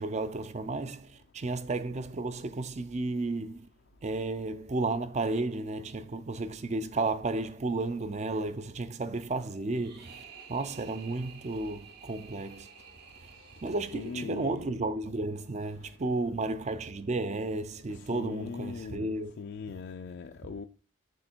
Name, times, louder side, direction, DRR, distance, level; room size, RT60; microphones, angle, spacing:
voice 1, 0.0-3.7 4.0-12.7 13.6-19.4, right 2 dB, 30° right, 0.4 m, -33 dB
sound 1, 9.7-14.9, right 6 dB, 50° right, 0.9 m, -52 dB
voice 2, 13.9-14.8 17.9-20.7, left 5 dB, 55° left, 0.3 m, -40 dB
6.4 x 3.5 x 4.4 m
head